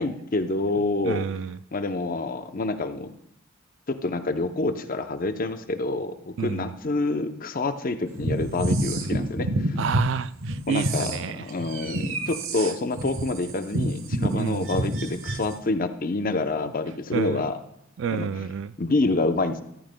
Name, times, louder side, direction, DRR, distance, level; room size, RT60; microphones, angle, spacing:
voice 1, 0.0-1.2 1.7-3.1 3.9-9.8 10.7-17.6 18.1-18.3 18.8-19.6, left 2 dB, 45° left, 9 dB, 0.7 m, -27 dB
voice 2, 1.0-1.6 6.4-6.7 9.0-9.1 9.8-11.5 14.3-14.7 17.1-17.4 18.0-18.7, right 6 dB, 60° right, 16 dB, 0.4 m, -29 dB
sound 1, 8.2-10.1 10.4-15.5, right 1 dB, 80° right, 1.1 m, -27 dB
14.0 x 14.0 x 2.2 m, 0.75 s
head